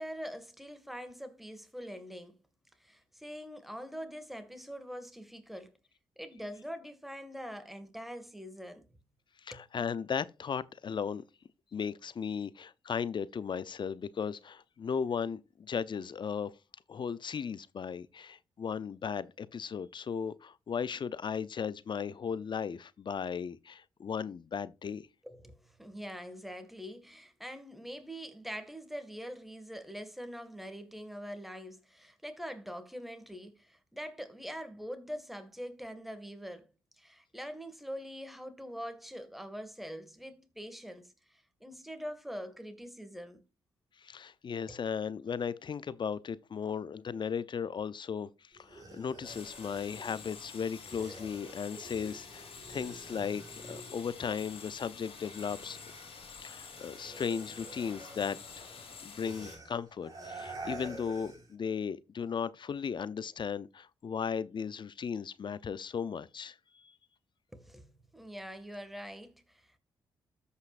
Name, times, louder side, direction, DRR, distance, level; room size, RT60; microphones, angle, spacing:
voice 1, 0.0-2.4 2.8-5.8 6.2-8.9 9.5-9.7 25.2-36.7 37.0-43.4 44.7-44.8 67.5-69.8, equal, ahead, 2.0 m, -44 dB
voice 2, 9.4-11.2 11.7-16.5 16.9-25.1 44.0-55.8 56.4-58.7 59.0-66.9, left 6 dB, 50° left, 0.6 m, -36 dB
sound 1, 48.5-54.7 55.0-61.5, right 2 dB, 35° right, 4.6 m, -49 dB
sound 2, 49.2-59.6, left 5 dB, 65° left, 3.1 m, -49 dB
14.0 x 5.6 x 2.5 m
supercardioid pair, 50°, 10 cm